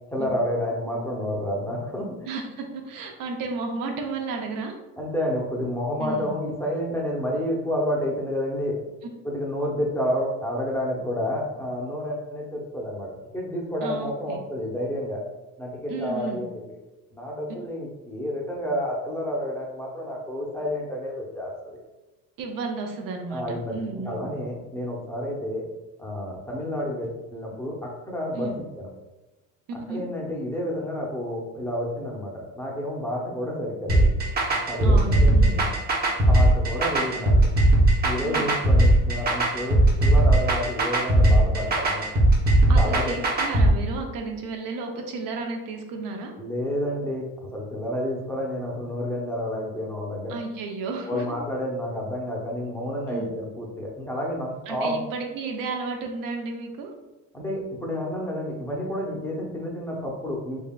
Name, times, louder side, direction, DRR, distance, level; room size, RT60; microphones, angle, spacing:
voice 1, 0.1-2.3 5.0-8.8 9.2-15.2 15.6-16.6 17.1-21.8 23.3-23.8 24.0-25.6 26.0-28.5 28.7-28.9 29.9-34.1 34.7-35.7 36.2-37.4 38.0-42.1 42.6-43.2 46.4-47.2 47.5-50.4 51.1-55.0 57.3-60.6, equal, 5° left, -3 dB, 0.7 m, -30 dB
voice 2, 2.3-4.7 6.0-6.4 13.8-14.4 15.9-16.5 22.4-24.2 28.3-28.6 29.9-30.0 34.8-35.6 38.2-38.5 42.7-46.3 50.3-51.2 53.1-53.3 54.7-56.9, right 3 dB, 60° right, 2 dB, 0.7 m, -33 dB
sound 1, 33.9-43.7, right 1 dB, 25° right, 0.8 m, -18 dB
3.6 x 3.2 x 2.3 m, 1.1 s
supercardioid pair, 100°, 37 cm